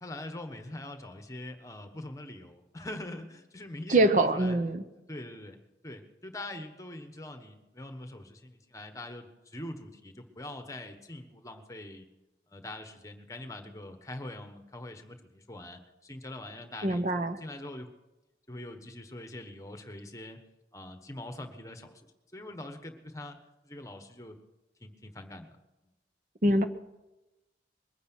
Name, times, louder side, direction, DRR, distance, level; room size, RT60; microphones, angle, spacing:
voice 1, 0.0-4.6 5.1-5.6 5.8-12.1 12.5-17.1 17.4-17.9 18.5-20.4 20.7-22.1 22.3-23.4 23.6-24.3 24.8-25.6, left 1 dB, 20° left, 7 dB, 1.3 m, -43 dB
voice 2, 3.9-4.8 16.8-17.4 26.4-26.6, right 1 dB, 45° right, 9 dB, 0.8 m, -24 dB
21.5 x 9.6 x 6.2 m, 1.0 s
head